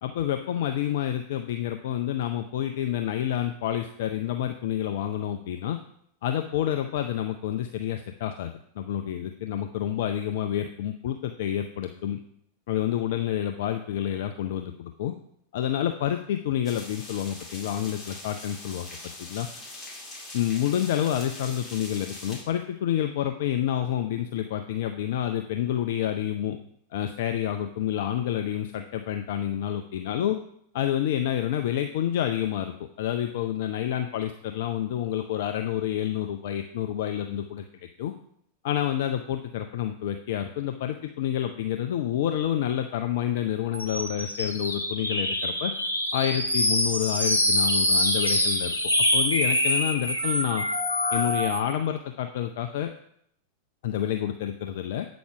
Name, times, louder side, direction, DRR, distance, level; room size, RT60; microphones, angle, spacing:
voice 1, 0.0-5.8 6.2-12.2 12.7-15.1 15.5-18.9 19.2-19.5 20.3-26.6 26.9-30.4 30.7-37.6 38.0-38.1 38.6-45.7 46.1-48.8 49.1-50.7 51.1-52.9 53.8-55.1, left 11 dB, 55° left, 7 dB, 0.5 m, -28 dB
sound 1, 16.6-22.4, left 2 dB, 20° left, 2.2 m, -42 dB
sound 2, 43.7-51.7, left 1 dB, 85° left, 1.3 m, -25 dB
8.5 x 6.1 x 4.9 m, 0.70 s
figure-of-eight pair, 90°, 0 cm